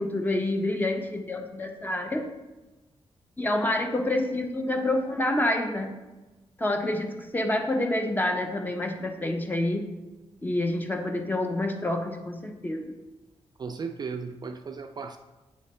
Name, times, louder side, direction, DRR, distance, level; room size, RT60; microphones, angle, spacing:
voice 1, 0.0-2.2 3.4-5.9 6.6-9.8 10.4-12.9, left 1 dB, 15° left, 4 dB, 0.7 m, -28 dB
voice 2, 13.6-15.2, right 5 dB, 40° right, 6 dB, 0.4 m, -35 dB
8.3 x 3.2 x 4.2 m, 1.1 s
wide cardioid pair, 135°, 11 cm